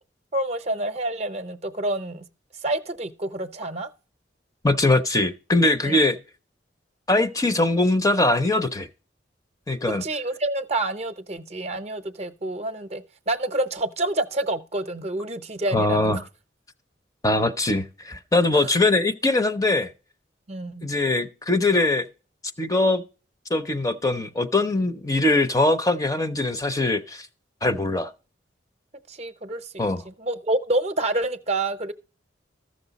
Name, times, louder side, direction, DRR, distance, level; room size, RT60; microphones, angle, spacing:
voice 1, 0.3-2.3 2.6-3.9 5.8-6.0 10.0-16.2 18.5-18.7 20.5-20.9 29.1-29.8 30.2-31.9, right 2 dB, 35° right, 0.7 m, -28 dB
voice 2, 4.6-6.2 7.1-8.9 9.7-10.0 15.7-16.2 17.2-19.9 20.8-22.1 22.6-23.0 23.5-27.3 27.6-28.1 29.8-30.0, left 2 dB, 20° left, 0.5 m, -22 dB
14.0 x 6.3 x 4.0 m
head